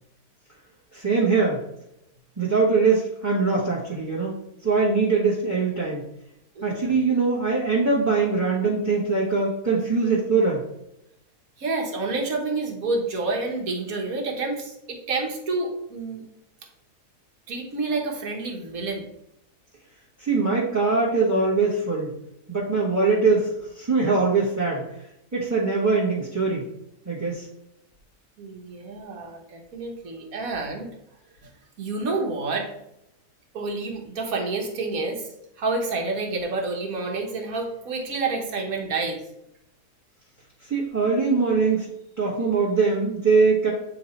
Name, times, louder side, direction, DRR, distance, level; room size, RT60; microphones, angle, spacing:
voice 1, 0.9-1.6 2.4-4.3 4.6-6.0 6.6-10.6 20.2-22.1 22.5-24.8 25.3-26.7 27.0-27.5 40.6-41.9 42.2-43.7, right 4 dB, 10° right, -6 dB, 1.3 m, -22 dB
voice 2, 6.5-6.9 11.6-16.2 17.5-19.0 28.4-30.9 31.4-31.5 31.8-32.7 33.5-35.3 35.6-39.2, right 3 dB, 65° right, 1 dB, 1.6 m, -29 dB
8.5 x 2.9 x 4.2 m, 0.81 s
omnidirectional pair, 1.7 m